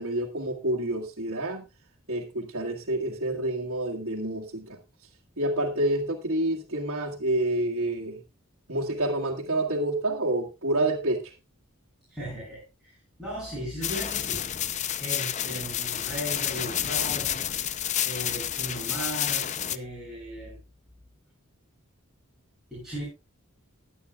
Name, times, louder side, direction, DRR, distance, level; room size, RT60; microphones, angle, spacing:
voice 1, 0.0-1.7 2.1-4.8 5.4-8.2 8.7-11.2, right 1 dB, 75° right, -4 dB, 1.8 m, -28 dB
voice 2, 12.1-14.5 15.0-17.5 18.0-20.6 22.7-23.0, equal, ahead, -8 dB, 7.2 m, -37 dB
sound 1, 13.8-19.8, left 10 dB, 35° left, 0.5 m, -29 dB
21.0 x 8.8 x 2.3 m, 0.28 s
head